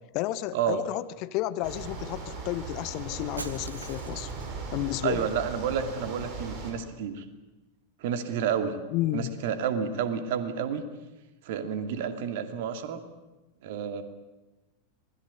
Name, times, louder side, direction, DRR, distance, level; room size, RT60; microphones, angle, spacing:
voice 1, 0.1-4.3 4.7-5.3 8.9-9.3, left 15 dB, 40° left, 15 dB, 1.1 m, -31 dB
sound 1, 1.6-6.7, right 3 dB, 35° right, 6.8 m, -38 dB
Shatter, 3.4-4.7, right 3 dB, 75° right, 1.3 m, -42 dB
voice 2, 5.0-7.2 8.0-8.8 9.1-10.9 11.4-13.0 13.6-14.0, right 7 dB, 50° right, 8 dB, 2.5 m, -30 dB
26.5 x 20.5 x 8.5 m, 1.1 s
figure-of-eight pair, 90°, 0 cm